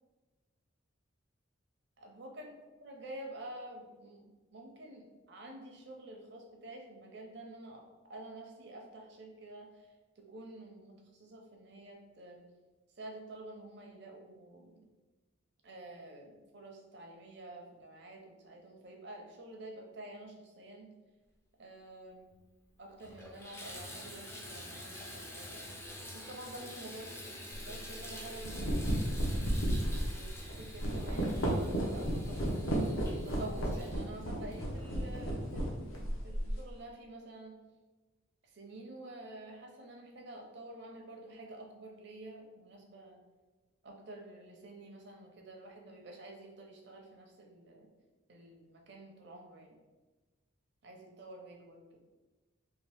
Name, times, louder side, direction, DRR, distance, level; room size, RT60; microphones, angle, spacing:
voice 1, 2.0-2.5 2.8-4.2 4.5-7.8 8.1-9.9 10.2-12.4 13.0-14.8 15.6-20.9 21.6-22.3 22.8-25.6 26.1-29.5 30.1-32.5 33.2-37.6 38.4-43.2 43.8-47.9 48.3-49.8 50.8-52.0, right 1 dB, 55° right, 1 dB, 0.6 m, -49 dB
Water tap faucet / Bathtub (filling or washing), 22.3-22.4 22.9-35.3 35.9-36.0 36.6-36.7, left 1 dB, 10° left, 0.4 m, -48 dB
sound 1, 27.6-27.7 28.3-36.7, equal, 70° left, 0.7 m, -33 dB
2.9 x 2.7 x 3.4 m, 1.2 s
head